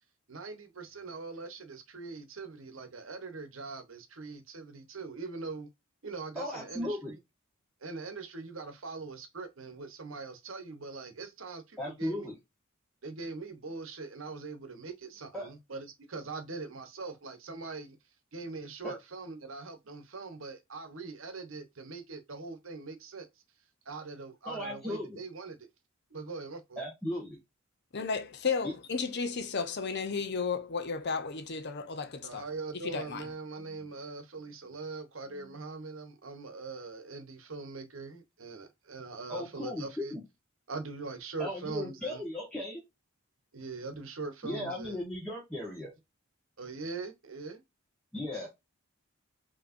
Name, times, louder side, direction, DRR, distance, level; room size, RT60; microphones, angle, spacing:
voice 1, 0.3-5.7 6.0-7.2 7.8-12.3 13.0-18.0 18.3-23.3 23.8-25.7 26.1-26.8 32.2-40.1 40.7-42.2 43.5-45.0 46.6-47.6, right 3 dB, 70° right, 1.0 m, -42 dB
voice 2, 6.3-7.1 11.8-12.4 15.3-15.5 18.8-18.9 24.4-25.2 26.8-27.4 28.6-28.7 33.6-33.9 35.3-35.5 39.3-40.2 41.4-42.8 44.4-45.9 48.1-48.5, left 1 dB, 5° left, 1.3 m, -37 dB
voice 3, 27.9-32.4 32.7-33.3, left 5 dB, 55° left, 0.7 m, -33 dB
5.3 x 2.9 x 2.5 m
head